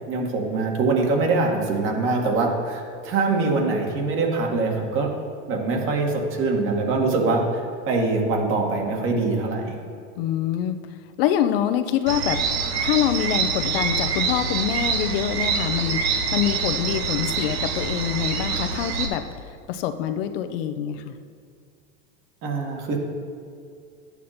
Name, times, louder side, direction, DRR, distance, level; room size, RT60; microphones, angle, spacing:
voice 1, 0.1-5.1 5.5-7.6 7.9-9.8 22.4-23.0, right 3 dB, 45° right, 1 dB, 2.1 m, -23 dB
voice 2, 10.2-10.8 11.2-12.4 12.8-19.2 19.7-21.1, left 10 dB, 70° left, 9 dB, 0.8 m, -25 dB
sound 1, 12.1-19.1, right 5 dB, 90° right, 1.4 m, -25 dB
12.0 x 8.3 x 4.3 m, 2.2 s
supercardioid pair, 135°, 30 cm